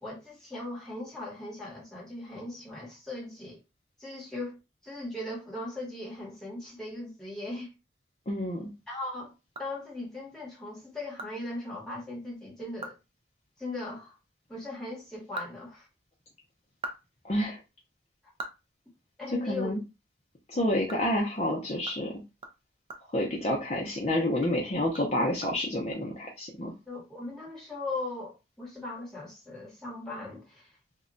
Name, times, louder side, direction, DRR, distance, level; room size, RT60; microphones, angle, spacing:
voice 1, 0.0-3.6 4.0-4.6 4.8-7.7 8.9-9.3 9.6-12.9 13.6-14.1 14.5-15.9 19.2-19.8 26.9-30.7, left 2 dB, 5° left, 0.9 m, -38 dB
voice 2, 8.3-8.7 17.2-17.6 19.4-19.8 20.5-22.2 23.1-26.7, left 1 dB, 35° left, 0.5 m, -29 dB
sound 1, 9.5-10.3 10.7-10.8 11.2-11.3 11.7-11.8 12.2-12.3 12.7-13.1 13.3-13.5 15.0-16.2 16.6-19.5 19.8-20.0 20.4-23.9 24.3-25.9, right 3 dB, 30° right, 0.4 m, -45 dB
2.2 x 2.1 x 3.7 m
head